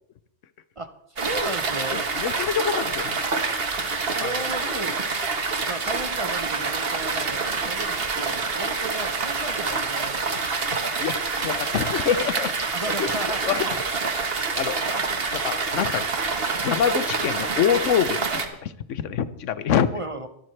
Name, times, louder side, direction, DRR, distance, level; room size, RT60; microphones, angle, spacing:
voice 1, 1.2-2.1 4.1-5.0 5.7-10.5 12.7-13.8 19.9-20.3, right 2 dB, 30° right, 8 dB, 0.8 m, -34 dB
sound 1, 1.2-18.5, right 4 dB, 55° right, 1.5 m, -27 dB
voice 2, 1.9-3.2 4.2-4.3 10.7-12.7 13.0-13.1 13.4-13.6 14.3-14.8 15.3-16.0 16.6-19.9, left 8 dB, 90° left, 14 dB, 1.1 m, -26 dB
23.5 x 12.0 x 3.2 m, 0.76 s
omnidirectional pair, 1.2 m